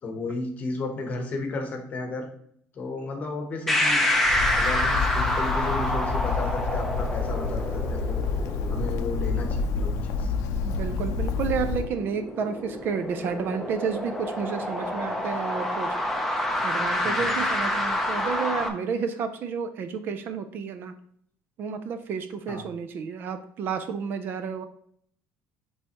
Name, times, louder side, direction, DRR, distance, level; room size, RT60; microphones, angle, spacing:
voice 1, 0.0-2.3 2.7-4.1 4.6-8.2 8.7-10.3 17.0-17.3 22.5-22.6, left 3 dB, 30° left, 4 dB, 1.0 m, -33 dB
sound 1, 3.7-18.7, left 1 dB, ahead, 0.6 m, -28 dB
Bird, 4.2-11.9, left 4 dB, 70° left, 0.6 m, -28 dB
voice 2, 10.6-16.0 16.6-20.9 21.6-24.6, right 6 dB, 40° right, 9 dB, 0.4 m, -31 dB
9.3 x 3.4 x 2.9 m, 0.66 s
cardioid pair, 180°, 6 cm